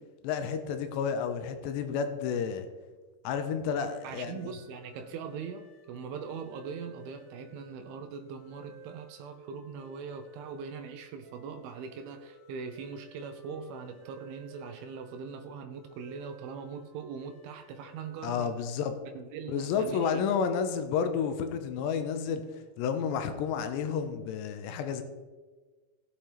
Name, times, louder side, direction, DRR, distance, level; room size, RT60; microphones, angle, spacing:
voice 1, 0.2-2.7 3.2-4.4 18.2-18.9 19.5-22.4 22.8-25.0, left 6 dB, 85° left, 3.1 m, -31 dB
sound 1, 3.7-18.8, equal, 20° right, 2.6 m, -55 dB
voice 2, 4.0-18.6 19.1-20.1, right 6 dB, 90° right, 2.1 m, -41 dB
18.5 x 7.3 x 3.3 m
omnidirectional pair, 5.1 m